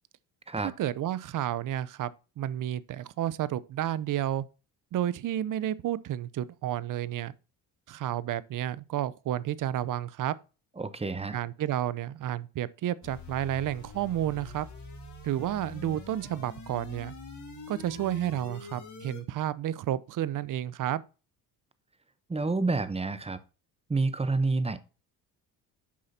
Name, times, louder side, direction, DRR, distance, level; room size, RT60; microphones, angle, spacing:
voice 1, 0.6-2.1 2.4-4.5 4.9-7.3 7.9-10.3 11.3-14.7 15.2-17.1 17.7-21.0, right 12 dB, 45° right, 0.6 m, -31 dB
voice 2, 10.8-11.4 22.3-23.4 23.9-24.8, right 3 dB, 15° right, 0.8 m, -28 dB
sound 1, 13.0-19.2, left 3 dB, 40° left, 2.9 m, -45 dB
8.6 x 5.7 x 2.8 m
supercardioid pair, 70°, 43 cm